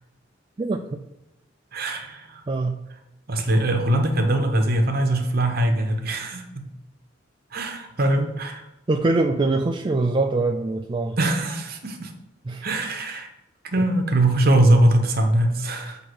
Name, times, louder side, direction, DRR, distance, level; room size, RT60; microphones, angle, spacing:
voice 1, 1.7-2.4 3.3-6.6 7.5-8.6 11.2-12.1 12.6-13.3 13.6-16.0, right 1 dB, 55° right, 5 dB, 1.0 m, -22 dB
voice 2, 2.5-2.8 8.9-11.2 12.5-12.7, right 2 dB, 25° right, 3 dB, 0.3 m, -23 dB
7.9 x 2.9 x 6.2 m, 0.89 s
head